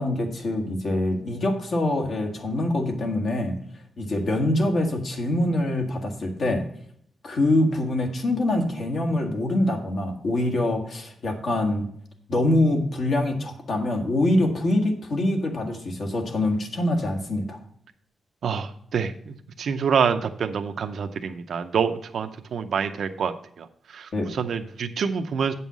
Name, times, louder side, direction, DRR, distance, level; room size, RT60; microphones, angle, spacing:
voice 1, 0.0-3.6 4.0-6.6 7.2-11.9 12.3-17.6 24.1-24.3, left 1 dB, 50° left, 3 dB, 1.5 m, -24 dB
voice 2, 18.4-23.7 23.9-25.5, right 6 dB, 65° right, 7 dB, 0.6 m, -27 dB
8.2 x 5.5 x 6.1 m, 0.66 s
wide cardioid pair, 165°, 0 cm